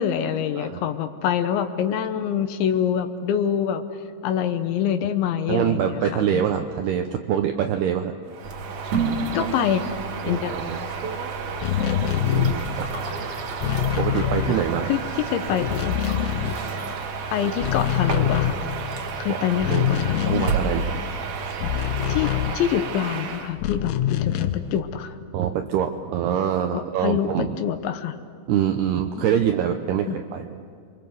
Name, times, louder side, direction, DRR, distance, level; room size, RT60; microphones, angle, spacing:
voice 1, 0.0-3.8 4.2-6.4 9.3-9.8 10.3-10.5 14.5-14.6 14.9-15.0 15.3-16.0 17.3-18.6 19.2-20.4 22.1-22.3 22.5-25.2 26.7-28.2 29.2-29.4 30.1-30.2, left 9 dB, 75° left, 9 dB, 3.1 m, -25 dB
voice 2, 5.5-8.1 9.4-9.5 10.2-10.8 12.3-12.9 14.0-14.9 19.3-19.9 20.2-21.0 25.3-27.6 28.5-30.6, right 9 dB, 80° right, 6 dB, 2.3 m, -25 dB
Bird vocalization bird call bird song, 8.3-23.5, right 6 dB, 60° right, 2.9 m, -33 dB
sound 1, 8.4-22.3, right 4 dB, 40° right, 3.1 m, -33 dB
sound 2, 11.5-15.2 15.4-17.2 17.5-23.1 23.6-24.8, left 11 dB, 90° left, 3.5 m, -25 dB
30.0 x 24.0 x 7.8 m, 2.3 s
omnidirectional pair, 5.7 m